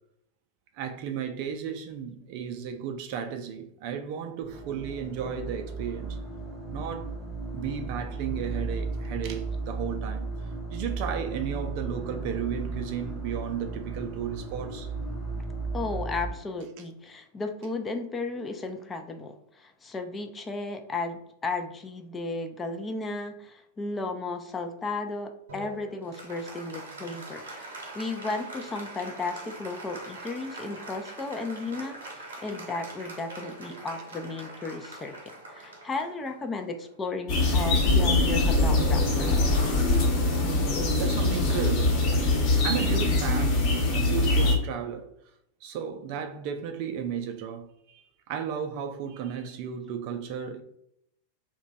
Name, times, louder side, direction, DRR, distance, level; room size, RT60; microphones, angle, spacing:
voice 1, 0.7-6.2 6.7-7.1 7.5-14.9 16.8-16.9 33.7-33.8 40.6-42.1 42.6-45.1 45.6-50.6, right 8 dB, 45° right, 0.4 m, -34 dB
sound 1, 4.4-16.3, right 3 dB, 10° right, 0.8 m, -35 dB
voice 2, 15.7-35.1 35.5-39.4, left 3 dB, 15° left, 0.4 m, -34 dB
Applause, 25.5-37.4, right 2 dB, 65° right, 0.9 m, -43 dB
sound 2, 37.3-44.6, left 2 dB, 40° left, 0.9 m, -23 dB
2.9 x 2.2 x 3.9 m
figure-of-eight pair, 90°, 0 cm